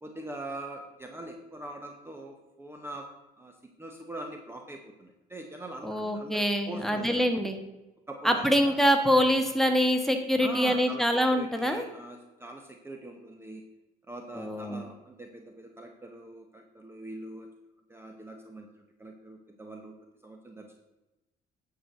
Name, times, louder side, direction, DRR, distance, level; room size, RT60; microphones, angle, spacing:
voice 1, 0.0-3.1 3.4-7.3 8.1-8.7 10.4-13.6 14.1-17.5 17.9-19.9 20.2-20.8, right 1 dB, 15° right, 3 dB, 1.0 m, -42 dB
voice 2, 5.8-7.6 8.2-11.8 14.3-14.8, equal, ahead, 4 dB, 1.3 m, -25 dB
9.9 x 4.7 x 6.7 m, 1.0 s
cardioid pair, 110°, 17 cm